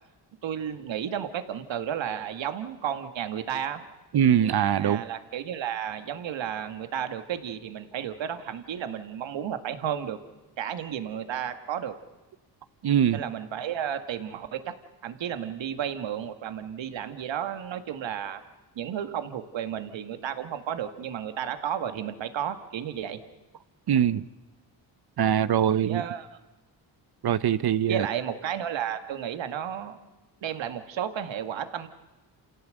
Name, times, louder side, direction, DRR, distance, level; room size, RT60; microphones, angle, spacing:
voice 1, 0.4-3.9 4.8-10.2 10.6-11.9 13.1-14.7 15.0-18.4 18.8-23.2 25.8-26.3 27.9-30.0 30.4-31.9, right 9 dB, 70° right, 9 dB, 2.1 m, -32 dB
voice 2, 4.1-5.0 12.8-13.2 23.9-24.2 25.2-26.0 27.2-28.1, right 9 dB, 55° right, 15 dB, 1.0 m, -22 dB
28.0 x 17.0 x 7.9 m, 1.1 s
cardioid pair, 65°, 46 cm